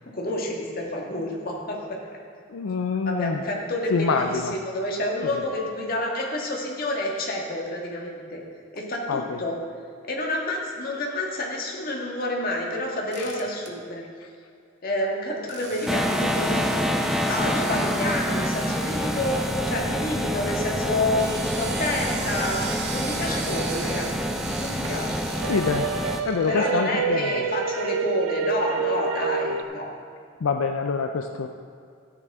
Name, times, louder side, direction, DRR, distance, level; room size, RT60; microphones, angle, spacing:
voice 1, 0.1-1.8 3.1-8.4 8.7-9.6 10.1-14.0 14.8-24.3 24.6-25.2 26.5-29.9, left 1 dB, 45° left, -1 dB, 1.7 m, -29 dB
voice 2, 2.5-3.4 3.9-4.6 9.1-9.4 25.5-25.9 26.2-27.2 30.4-31.5, left 5 dB, 85° left, 6 dB, 0.4 m, -25 dB
sound 1, 13.1-13.7 15.5-19.8 21.0-26.8, right 5 dB, 55° right, 1.0 m, -38 dB
sound 2, 15.9-26.2, equal, ahead, 0.5 m, -27 dB
sound 3, 23.4-24.9 25.3-29.6, right 6 dB, 85° right, 0.5 m, -29 dB
13.0 x 9.2 x 3.6 m, 2.3 s
head